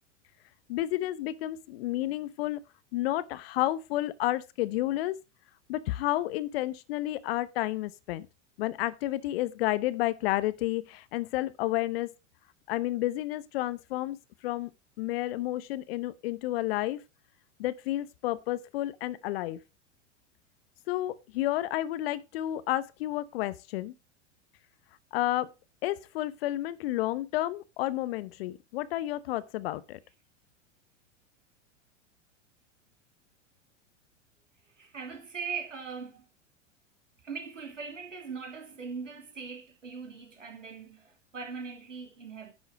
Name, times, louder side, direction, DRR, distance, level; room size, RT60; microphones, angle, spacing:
voice 1, 0.7-2.6 2.9-5.2 5.7-8.3 8.6-12.1 12.7-14.7 15.0-17.0 17.6-19.6 20.9-23.9 25.1-25.5 25.8-30.0, left 15 dB, 50° left, 0.9 m, -31 dB
voice 2, 34.8-36.3 37.2-42.5, right 5 dB, 85° right, 2.9 m, -40 dB
10.5 x 6.2 x 4.8 m
figure-of-eight pair, 95°, 37 cm